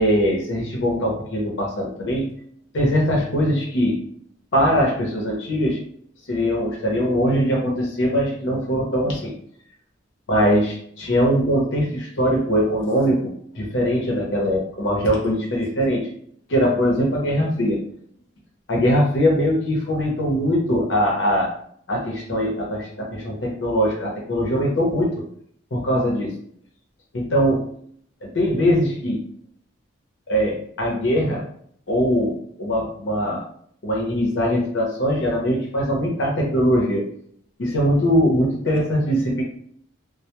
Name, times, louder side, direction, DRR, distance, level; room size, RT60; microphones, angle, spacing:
voice 1, 0.0-2.3 2.7-4.0 4.5-5.8 6.3-9.3 10.3-16.1 16.5-17.9 18.7-21.5 21.9-25.1 25.7-26.3 27.1-27.6 28.2-29.2 30.3-31.4 31.9-33.4 33.8-37.0 37.6-39.4, equal, 80° left, -2 dB, 0.7 m, -21 dB
2.1 x 2.1 x 2.8 m, 0.62 s
head